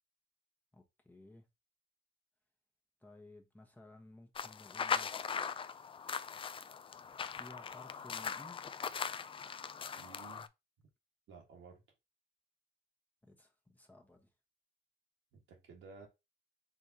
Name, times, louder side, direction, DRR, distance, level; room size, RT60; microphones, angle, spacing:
voice 1, 0.7-1.5 3.0-5.3 7.3-8.6 13.2-14.3, left 1 dB, 10° left, 1.1 m, -57 dB
sound 1, 4.4-10.5, left 6 dB, 25° left, 0.3 m, -40 dB
voice 2, 10.0-10.5 11.3-11.8 15.3-16.1, right 5 dB, 75° right, 1.7 m, -54 dB
4.8 x 3.5 x 2.8 m
cardioid pair, 90°, 20 cm